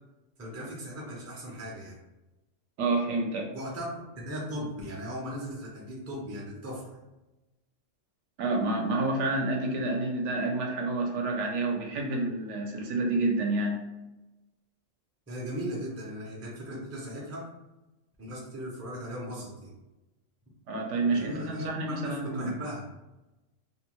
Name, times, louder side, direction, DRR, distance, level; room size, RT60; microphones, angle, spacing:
voice 1, 0.4-2.0 3.5-7.0 15.3-17.5 18.2-19.8 21.1-22.8, equal, 20° right, -3 dB, 0.4 m, -38 dB
voice 2, 2.8-3.5 8.4-13.8 20.7-22.5, right 2 dB, 75° right, 1 dB, 0.9 m, -29 dB
2.6 x 2.1 x 3.0 m, 1.0 s
omnidirectional pair, 1.3 m